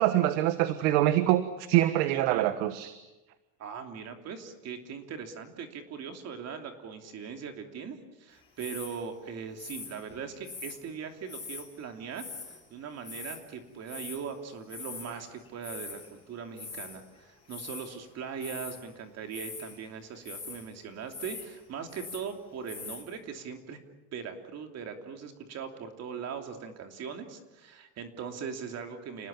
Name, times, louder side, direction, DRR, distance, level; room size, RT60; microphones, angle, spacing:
voice 1, 0.0-2.9, right 14 dB, 75° right, 11 dB, 1.5 m, -25 dB
voice 2, 2.1-2.5 3.6-23.8 24.1-29.3, right 6 dB, 45° right, 5 dB, 3.0 m, -40 dB
sound 1, 8.6-9.0 9.6-10.8 11.3-11.7 12.1-12.6 12.8-13.4 13.9-14.2 14.7-15.2 15.5-16.1 16.6-17.0 17.5-17.9 18.3-18.8 19.3-19.8 20.2-20.6 21.1-21.5 21.7-22.3 22.7-23.0, left 4 dB, 15° left, 6.8 m, -42 dB
29.5 x 19.0 x 8.9 m, 1.1 s
cardioid pair, 140°, 38 cm